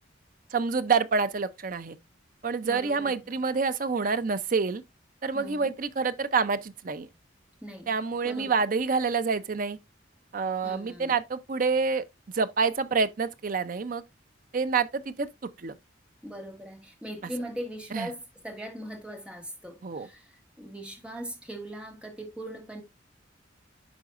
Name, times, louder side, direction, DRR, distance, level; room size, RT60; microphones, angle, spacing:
voice 1, 0.5-2.0 2.4-4.8 5.2-7.1 7.9-9.8 10.3-12.0 12.3-14.0 14.5-15.8 17.9-18.1 19.8-20.1, right 5 dB, 45° right, 0.5 m, -27 dB
voice 2, 2.6-3.2 5.3-5.7 7.6-7.9 8.2-8.5 10.6-11.2 16.2-22.8, right 1 dB, 5° right, 1.5 m, -40 dB
11.5 x 3.9 x 2.4 m
head